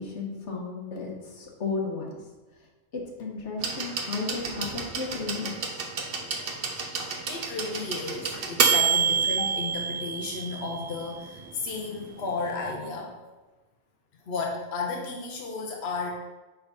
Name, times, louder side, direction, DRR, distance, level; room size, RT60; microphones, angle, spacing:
voice 1, 0.0-2.2 2.9-5.8, left 4 dB, 80° left, 0 dB, 1.5 m, -34 dB
sound 1, 3.6-11.4 12.5-12.6, right 6 dB, 55° right, 1.0 m, -28 dB
voice 2, 7.0-13.1 14.3-16.1, left 3 dB, 65° left, 0 dB, 1.1 m, -33 dB
9.4 x 3.5 x 4.1 m, 1.2 s
omnidirectional pair, 1.2 m